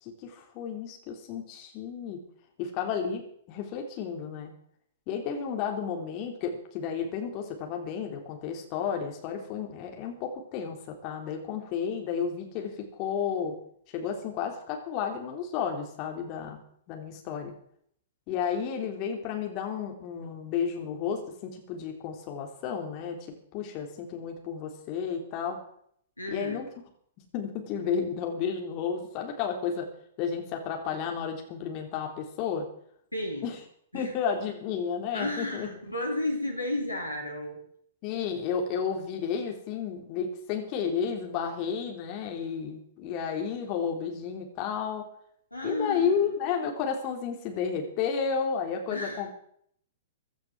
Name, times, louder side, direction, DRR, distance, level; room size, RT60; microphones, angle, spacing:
voice 1, 0.0-2.2 2.6-4.5 5.1-13.6 13.9-16.6 16.9-17.5 18.3-23.3 23.5-25.6 26.3-26.7 27.3-29.9 30.2-32.7 33.4-33.6 33.9-35.7 38.0-45.1 45.6-49.3, left 7 dB, 35° left, 2 dB, 3.6 m, -32 dB
voice 2, 26.2-26.7 33.1-33.6 33.9-34.1 35.1-37.6 45.5-46.3 48.9-49.3, left 1 dB, 85° left, 2 dB, 3.4 m, -33 dB
16.5 x 12.0 x 6.3 m, 0.66 s
figure-of-eight pair, 105°, 0 cm